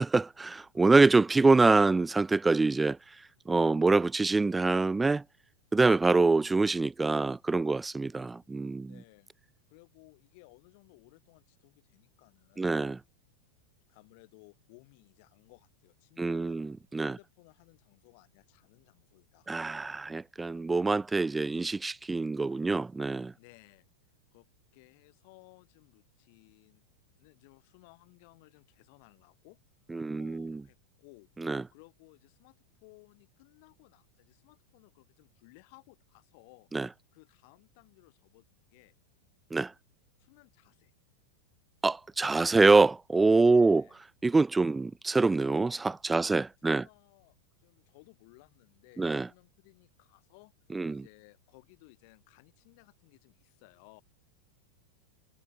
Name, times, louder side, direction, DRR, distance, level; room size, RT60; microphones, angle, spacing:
voice 1, 0.0-3.0 3.5-5.2 5.7-8.9 12.6-13.0 16.2-17.2 19.5-23.3 29.9-30.6 31.4-31.6 36.7-36.9 39.5-39.7 41.8-43.9 44.2-46.9 49.0-49.3 50.7-51.0, right 3 dB, 10° right, 0.4 m, -25 dB
voice 2, 8.8-9.3 9.7-12.8 13.9-16.6 17.0-19.5 23.3-23.8 24.3-24.5 24.7-26.8 27.2-29.6 29.9-31.3 31.7-36.7 37.1-38.9 40.2-40.9 43.4-44.0 46.1-50.5 50.9-54.0, left 30 dB, 45° left, 4.8 m, -59 dB
figure-of-eight pair, 90°, 0 cm